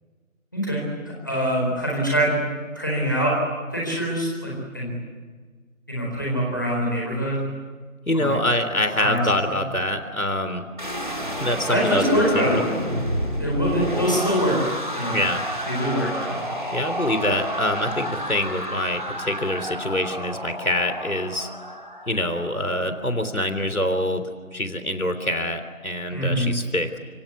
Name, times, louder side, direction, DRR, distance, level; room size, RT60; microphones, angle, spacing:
voice 1, 0.5-0.8 1.2-2.4 2.7-3.4 3.7-4.9 5.9-7.4 8.1-8.3 9.0-9.5 11.7-12.8 13.4-14.6 14.9-15.2 15.6-16.4 26.1-26.5, equal, 15° left, -4 dB, 4.3 m, -24 dB
voice 2, 8.1-10.7 11.4-12.6 15.1-15.4 16.7-21.5 22.1-24.2 24.5-27.0, left 1 dB, 85° left, 8 dB, 3.6 m, -25 dB
sound 1, 10.8-22.8, equal, 35° right, 3.2 m, -30 dB
27.0 x 26.0 x 8.4 m, 1.5 s
figure-of-eight pair, 175°, 42 cm